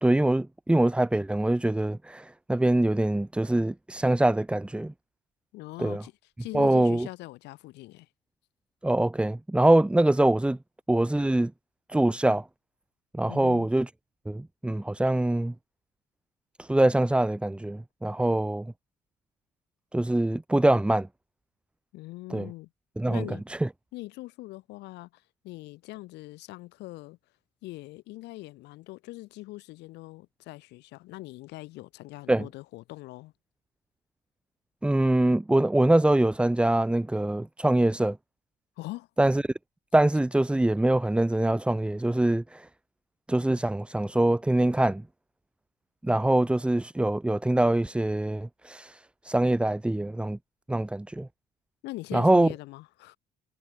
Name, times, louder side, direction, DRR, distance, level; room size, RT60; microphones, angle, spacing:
voice 1, 0.0-4.9 5.8-6.0 6.5-7.1 8.8-10.6 10.9-11.5 11.9-12.5 13.1-13.9 14.3-15.5 16.6-18.7 19.9-21.1 22.3-22.5 23.0-23.7 32.3-32.5 34.8-38.2 39.2-39.5 39.9-42.7 43.3-45.0 46.0-50.4 50.7-51.3 52.1-52.5, right 1 dB, 5° right, 0.8 m, -24 dB
voice 2, 5.5-6.1 6.4-8.1 13.3-13.7 21.9-22.7 23.1-23.4 23.9-27.2 27.6-33.3 38.8-39.1 51.8-53.2, left 19 dB, 85° left, 6.3 m, -42 dB
cardioid pair, 110°, 17 cm